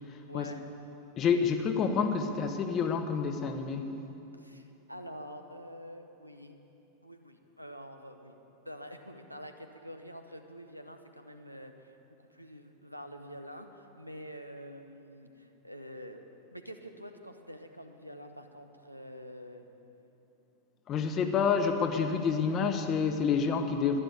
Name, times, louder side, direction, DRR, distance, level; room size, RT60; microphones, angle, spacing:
voice 1, 0.3-0.6 4.3-6.6 7.0-8.3 8.6-12.0 12.3-19.7, equal, 90° right, 5 dB, 0.9 m, -46 dB
voice 2, 1.2-3.9 20.9-24.0, left 6 dB, 30° left, 7 dB, 1.1 m, -28 dB
11.5 x 11.0 x 8.4 m, 2.9 s
figure-of-eight pair, 90°, 0 cm